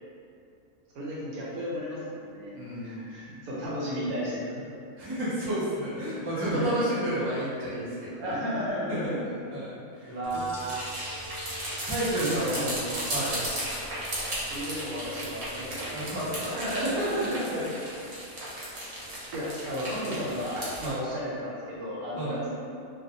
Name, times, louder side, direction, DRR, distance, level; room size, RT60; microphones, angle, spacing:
voice 1, 0.9-4.6 6.3-6.8 8.2-9.2 10.0-10.8 12.2-12.7 13.0-13.4 14.5-16.0 16.6-16.9 17.2-17.7 19.3-22.5, equal, 80° right, -6 dB, 1.2 m, -33 dB
voice 2, 2.5-3.4 5.0-8.4 8.9-9.2 9.5-10.4 11.9-13.4 15.9-17.4 20.8-21.1 22.1-22.4, right 1 dB, 40° right, -10 dB, 0.3 m, -31 dB
sound 1, 10.2-20.9, right 1 dB, 55° right, 0.9 m, -35 dB
2.6 x 2.0 x 2.7 m, 2.5 s
omnidirectional pair, 1.5 m